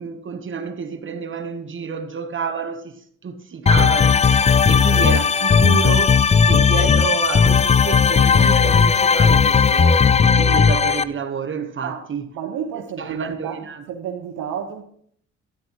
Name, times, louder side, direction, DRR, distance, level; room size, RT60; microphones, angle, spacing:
voice 1, 0.0-3.0 3.2-10.1 10.4-12.3 13.0-13.8, right 5 dB, 40° right, 1.1 m, -29 dB
sound 1, 3.7-11.0, left 6 dB, 20° left, 0.4 m, -15 dB
voice 2, 12.3-14.8, right 8 dB, 80° right, 1.1 m, -31 dB
12.5 x 10.0 x 3.0 m
cardioid pair, 90°, 30 cm